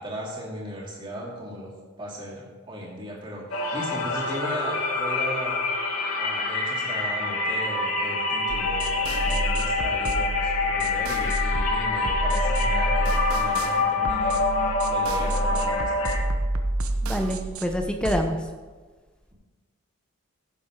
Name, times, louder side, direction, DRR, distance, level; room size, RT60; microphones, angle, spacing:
voice 1, 0.0-5.6 6.2-14.5 14.9-16.5, equal, 20° right, -5 dB, 2.9 m, -37 dB
sound 1, 3.5-16.2, left 3 dB, 80° left, 1.9 m, -26 dB
sound 2, 8.5-18.2, right 1 dB, 80° right, 1.0 m, -29 dB
voice 2, 17.0-18.4, equal, 5° left, 4 dB, 0.8 m, -26 dB
16.0 x 7.4 x 3.7 m, 1.4 s
head